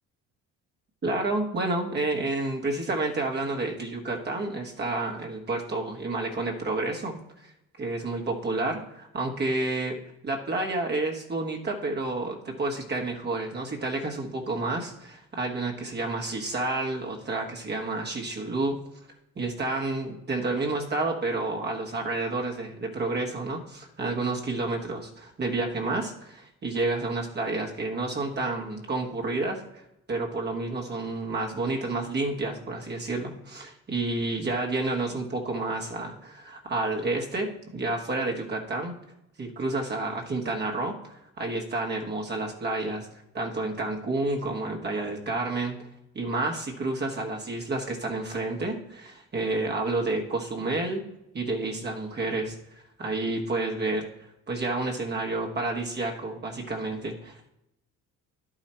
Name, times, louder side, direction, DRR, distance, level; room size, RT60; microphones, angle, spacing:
voice 1, 1.0-7.5 7.8-10.0 10.2-18.8 19.4-29.8 30.1-39.0 39.4-43.1 43.3-45.8 46.1-51.0 51.3-57.5, right 2 dB, 35° right, 1 dB, 1.4 m, -30 dB
10.5 x 4.9 x 4.4 m, 0.86 s
cardioid pair, 110°, 31 cm